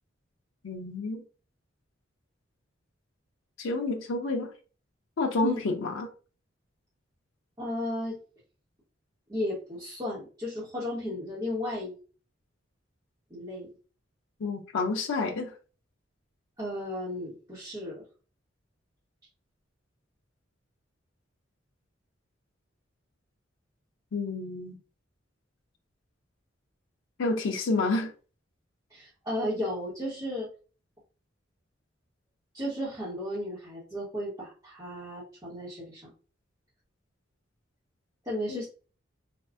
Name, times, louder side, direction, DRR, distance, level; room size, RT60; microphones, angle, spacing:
voice 1, 0.6-1.2 3.6-4.5 5.2-6.1 14.4-15.5 24.1-24.8 27.2-28.1 38.5-38.6, left 3 dB, 90° left, 0.5 m, -29 dB
voice 2, 7.6-8.2 9.3-12.0 13.3-13.7 16.6-18.0 28.9-30.5 32.5-36.0 38.2-38.7, left 1 dB, 20° right, 1.2 m, -34 dB
3.5 x 2.3 x 2.5 m
head